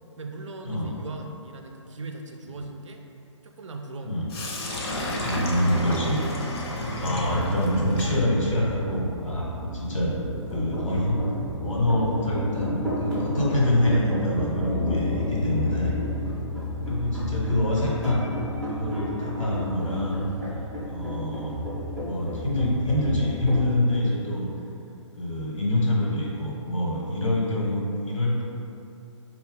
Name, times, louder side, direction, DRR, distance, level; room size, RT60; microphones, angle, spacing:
voice 1, 0.2-3.0 3.4-4.3 16.2-16.5, right 3 dB, 70° right, 3 dB, 0.5 m, -39 dB
Sink (filling or washing), 4.3-12.2, left 1 dB, 50° left, 0.7 m, -33 dB
voice 2, 5.2-6.2 7.0-9.5 9.7-10.1 10.5-11.2 11.6-15.9 16.9-18.3 18.7-20.2 20.9-21.6 22.0-24.5 25.2-28.4, left 1 dB, 80° left, -4 dB, 1.2 m, -25 dB
sound 1, 6.9-23.7, left 1 dB, ahead, 0.5 m, -31 dB
4.2 x 2.3 x 3.6 m, 2.7 s
figure-of-eight pair, 130°, 16 cm